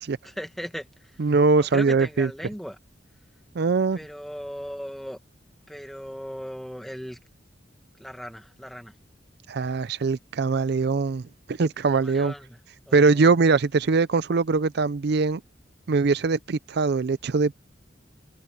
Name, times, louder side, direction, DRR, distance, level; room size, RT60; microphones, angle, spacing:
voice 1, 0.2-1.1 1.6-2.8 3.9-5.2 5.7-7.2 8.0-8.9 12.0-12.6 12.9-13.3, equal, ahead, 1.9 m, -37 dB
voice 2, 1.2-2.3 3.6-4.0 9.5-11.2 11.5-12.3 12.9-15.4 15.9-17.5, right 4 dB, 60° right, 0.5 m, -22 dB
open air
head